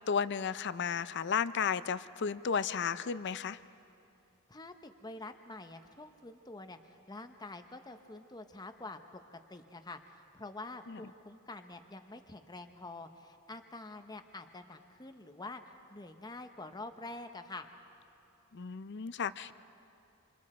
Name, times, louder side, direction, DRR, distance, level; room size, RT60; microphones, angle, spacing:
voice 1, 0.1-3.6 10.9-11.0 18.5-19.6, left 6 dB, 55° left, 15 dB, 0.5 m, -33 dB
voice 2, 4.5-9.0 9.3-17.7, left 2 dB, 20° left, 7 dB, 0.9 m, -47 dB
27.5 x 26.5 x 4.3 m, 2.8 s
head